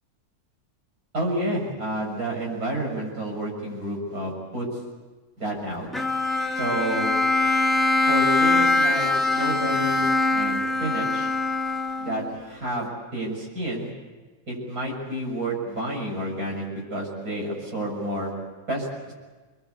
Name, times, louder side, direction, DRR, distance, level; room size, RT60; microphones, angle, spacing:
voice 1, 1.1-4.7 5.4-5.9 6.6-7.2 8.0-11.3 12.0-13.9 14.5-18.3 18.7-18.9, right 1 dB, 70° right, -1 dB, 7.5 m, -30 dB
Bowed string instrument, 5.9-12.4, left 2 dB, ahead, 1.6 m, -23 dB
27.5 x 21.5 x 8.4 m, 1.3 s
omnidirectional pair, 1.6 m